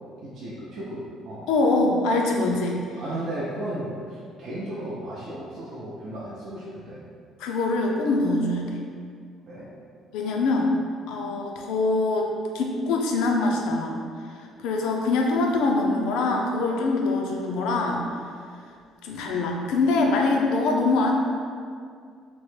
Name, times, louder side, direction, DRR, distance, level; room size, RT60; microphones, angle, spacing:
voice 1, 0.2-1.5 3.0-7.0 9.5-9.7, right 1 dB, 60° right, -8 dB, 0.5 m, -35 dB
voice 2, 1.5-2.8 7.4-8.8 10.1-10.7 11.1-12.3 12.5-14.0 14.4-18.0 19.0-21.1, left 3 dB, 85° left, 1 dB, 0.4 m, -24 dB
2.9 x 2.1 x 3.2 m, 2.2 s
cardioid pair, 125°, 0 cm